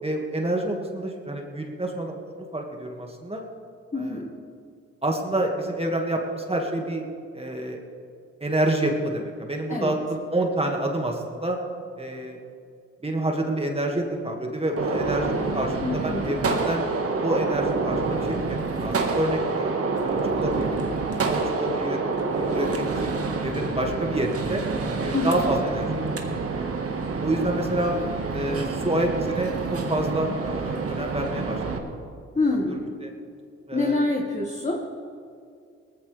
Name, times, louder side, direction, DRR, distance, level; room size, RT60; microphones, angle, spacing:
voice 1, 0.0-3.4 4.0-4.2 5.0-7.0 7.3-7.8 8.4-11.6 12.0-12.4 13.0-16.8 17.2-18.4 18.7-19.7 20.0-20.8 21.2-22.0 22.3-23.1 23.4-24.6 25.0-25.9 26.5-26.7 27.2-28.0 28.3-31.6 33.0-33.1 33.7-34.0, right 1 dB, 20° right, 1 dB, 2.1 m, -28 dB
voice 2, 3.9-4.3 9.7-10.0 15.8-16.3 25.1-25.5 32.4-32.8 33.7-34.8, left 2 dB, 25° left, 0 dB, 1.9 m, -26 dB
Gunshot gunfire, 14.8-31.8, right 3 dB, 50° right, 1.8 m, -27 dB
18.5 x 15.0 x 3.5 m, 2.3 s
supercardioid pair, 50°, 30 cm